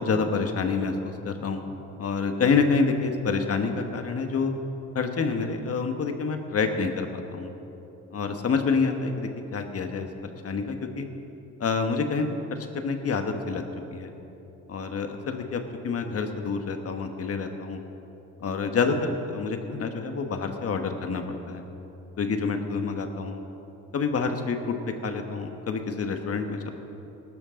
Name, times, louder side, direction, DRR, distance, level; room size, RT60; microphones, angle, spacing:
voice 1, 0.0-1.6 2.0-4.5 4.9-7.5 8.1-11.1 11.6-13.6 13.9-14.1 14.7-17.8 18.4-21.6 22.2-23.4 23.9-26.7, left 4 dB, 50° left, 5 dB, 1.5 m, -27 dB
18.5 x 12.5 x 3.8 m, 3.0 s
cardioid pair, 90°, 30 cm